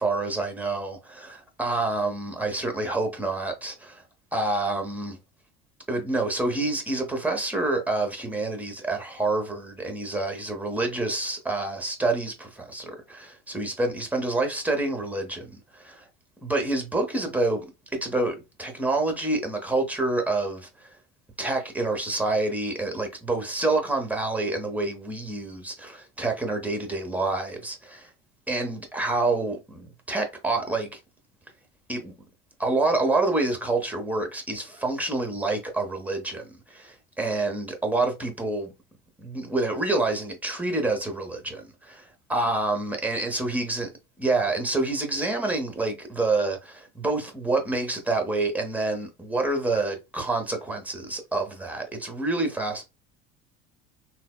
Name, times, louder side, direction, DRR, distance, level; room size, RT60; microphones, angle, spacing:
voice 1, 0.0-4.0 4.3-5.2 5.9-16.0 16.4-17.7 17.9-21.0 21.4-28.1 28.5-31.0 31.9-32.1 32.6-38.7 39.2-43.9 44.2-52.8, right 2 dB, 5° right, 0.8 m, -27 dB
3.3 x 2.2 x 2.3 m
supercardioid pair, 100°, 30 cm